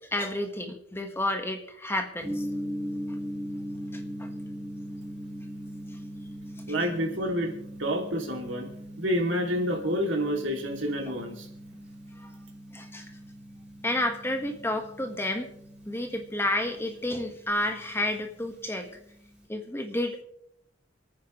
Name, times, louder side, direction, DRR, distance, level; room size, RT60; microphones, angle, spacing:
voice 1, 0.1-2.5 3.9-4.3 12.2-12.3 12.7-13.1 13.8-15.5 15.9-18.9 19.5-20.2, left 1 dB, 15° left, 4 dB, 1.5 m, -30 dB
Gong, 2.2-19.5, equal, 5° right, 4.3 m, -40 dB
voice 2, 6.7-7.5 7.8-8.7 9.0-11.5, equal, 70° right, 2 dB, 2.7 m, -28 dB
28.0 x 9.6 x 3.2 m, 0.73 s
head